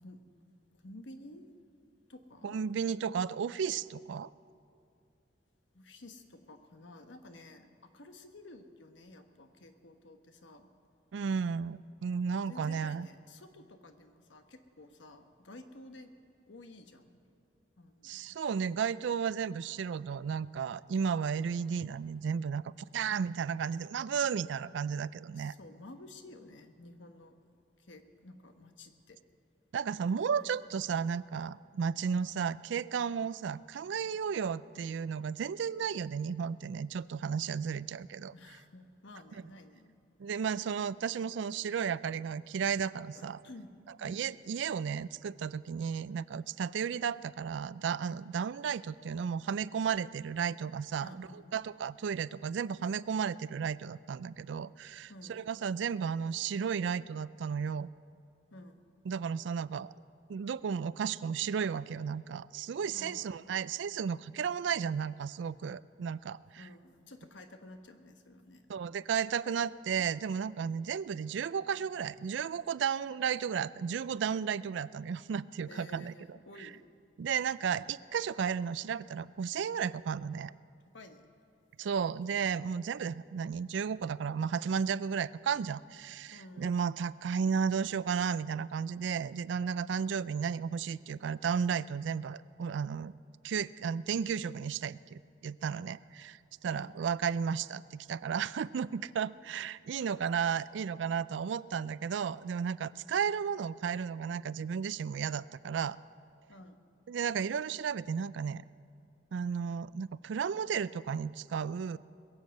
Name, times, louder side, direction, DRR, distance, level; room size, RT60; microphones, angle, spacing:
voice 1, 0.8-1.5 2.1-2.6 5.7-10.7 11.7-11.8 12.2-16.1 16.5-17.2 17.8-18.2 25.3-27.4 27.8-29.2 38.3-40.0 42.5-42.6 43.1-43.7 44.0-44.3 51.0-51.5 55.1-55.5 58.5-58.8 62.9-63.5 66.6-68.8 75.7-76.8 80.9-81.3 86.3-86.7 96.6-96.9 100.0-100.1 106.5-106.8, left 2 dB, 75° left, 7 dB, 1.1 m, -52 dB
voice 2, 2.4-4.3 11.1-13.1 18.0-22.6 22.9-25.5 29.7-38.3 40.2-43.4 44.0-57.9 59.1-59.9 60.3-66.6 68.7-76.7 77.2-80.5 81.8-93.1 93.4-106.0 107.1-108.6 109.3-112.0, right 7 dB, 70° right, 18 dB, 0.3 m, -33 dB
21.5 x 7.4 x 7.7 m, 2.4 s
head